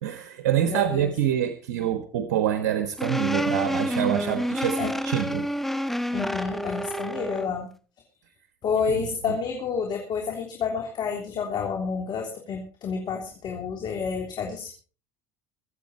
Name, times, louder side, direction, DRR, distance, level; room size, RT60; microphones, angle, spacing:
voice 1, 0.0-5.5 8.9-9.4, right 10 dB, 85° right, 9 dB, 1.3 m, -26 dB
voice 2, 0.7-1.1 4.8-5.0 6.1-7.7 8.6-14.7, left 6 dB, 45° left, 2 dB, 3.4 m, -29 dB
sound 1, 3.0-7.5, equal, ahead, 1.2 m, -28 dB
23.5 x 8.3 x 4.3 m, 0.38 s
supercardioid pair, 95°, 10 cm